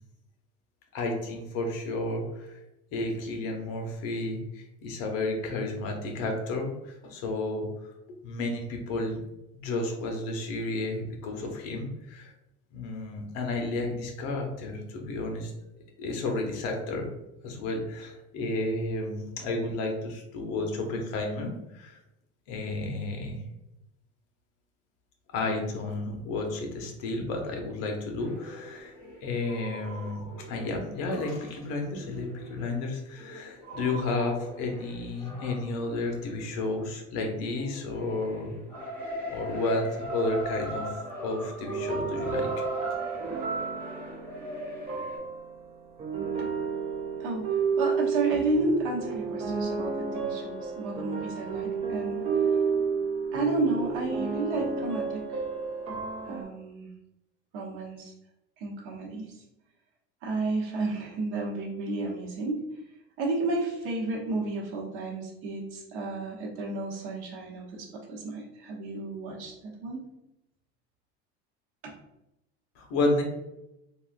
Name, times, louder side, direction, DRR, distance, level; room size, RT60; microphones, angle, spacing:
voice 1, 0.9-2.6 2.9-7.7 8.1-9.2 9.5-12.3 12.7-15.5 16.0-17.1 17.4-22.0 22.5-23.4 25.3-38.6 39.3-42.5 72.8-73.2, left 2 dB, 60° left, 2 dB, 0.8 m, -32 dB
sound 1, 28.2-37.0 37.4-45.2, equal, 5° left, 1.2 m, -40 dB
sound 2, 41.7-56.4, right 5 dB, 20° right, 0.4 m, -31 dB
voice 2, 47.2-52.3 53.3-55.4 56.3-56.9 57.5-58.1 58.6-59.4 60.2-62.6 63.2-70.0 71.8-71.9, right 3 dB, 75° right, -2 dB, 1.0 m, -32 dB
3.6 x 2.3 x 2.4 m, 0.89 s
cardioid pair, 155°, 29 cm